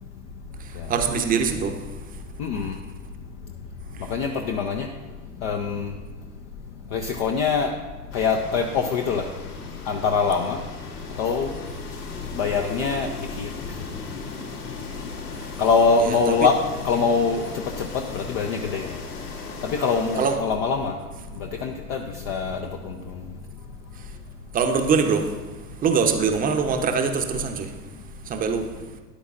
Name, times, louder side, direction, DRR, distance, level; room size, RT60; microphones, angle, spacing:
voice 1, 0.9-1.7 16.0-16.2 20.2-20.4 24.5-25.3 25.8-27.7 28.3-28.7, right 5 dB, 20° right, 6 dB, 0.7 m, -22 dB
voice 2, 2.4-2.7 4.1-4.9 5.4-5.9 6.9-7.7 8.1-9.2 9.9-10.6 11.2-11.5 12.4-13.1 13.4-13.5 15.6-16.6 16.8-17.4 17.8-18.9 19.6-20.9 21.6-22.9, left 5 dB, 25° left, 3 dB, 0.4 m, -23 dB
sound 1, 8.1-20.4, left 4 dB, 75° left, 2.1 m, -38 dB
12.5 x 10.0 x 2.5 m, 1.3 s
figure-of-eight pair, 90°, 47 cm